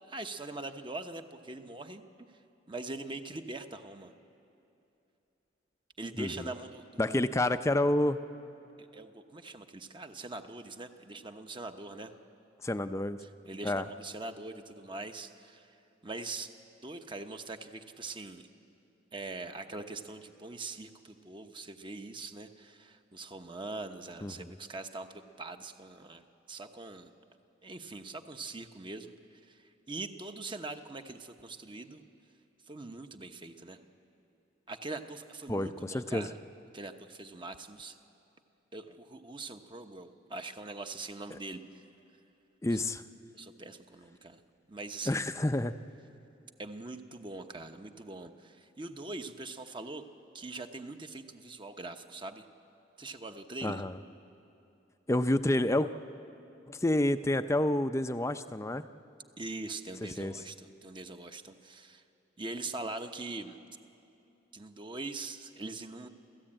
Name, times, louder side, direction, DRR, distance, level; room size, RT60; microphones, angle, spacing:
voice 1, 0.0-2.0 2.7-4.1 6.0-7.2 8.8-12.1 13.2-15.8 16.0-16.5 16.8-18.5 19.1-27.1 27.6-32.0 32.7-33.8 34.7-36.4 36.7-38.0 38.7-41.9 43.3-44.4 44.7-45.3 46.6-50.0 50.3-52.5 53.0-53.8 59.4-62.0 62.4-63.6 64.5-66.1, right 2 dB, 25° right, 7 dB, 1.0 m, -42 dB
voice 2, 6.2-6.5 7.0-8.2 12.6-13.2 13.6-13.8 24.2-24.5 35.5-36.3 42.6-43.0 45.1-45.7 53.6-53.9 55.1-55.9 56.7-58.8 60.0-60.3, left 1 dB, 15° left, 10 dB, 0.5 m, -29 dB
30.0 x 14.5 x 8.9 m, 2.7 s
head